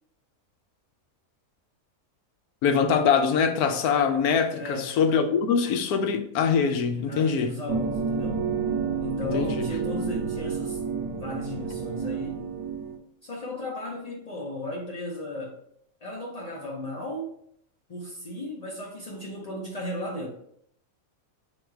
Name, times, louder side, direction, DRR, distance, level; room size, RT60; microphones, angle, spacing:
voice 1, 2.6-7.5 9.2-9.7, left 6 dB, 90° left, 1.1 m, -23 dB
voice 2, 4.5-5.0 7.1-8.5 9.0-10.8 11.2-12.4 13.2-15.6 16.0-17.3 17.9-20.3, left 1 dB, 65° left, 0.4 m, -35 dB
sound 1, 7.7-13.0, right 5 dB, 80° right, 1.1 m, -30 dB
3.7 x 3.1 x 4.5 m
omnidirectional pair, 1.5 m